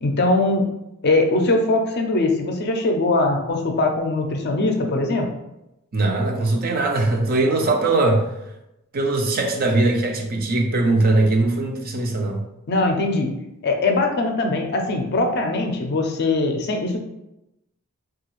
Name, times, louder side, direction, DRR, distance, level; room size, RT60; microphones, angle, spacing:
voice 1, 0.0-0.7 1.0-5.3 12.7-13.3 13.6-17.0, left 2 dB, 50° left, 3 dB, 0.5 m, -21 dB
voice 2, 5.9-8.3 8.9-12.4, right 2 dB, 40° right, 1 dB, 0.5 m, -20 dB
3.1 x 2.3 x 3.0 m, 0.88 s
head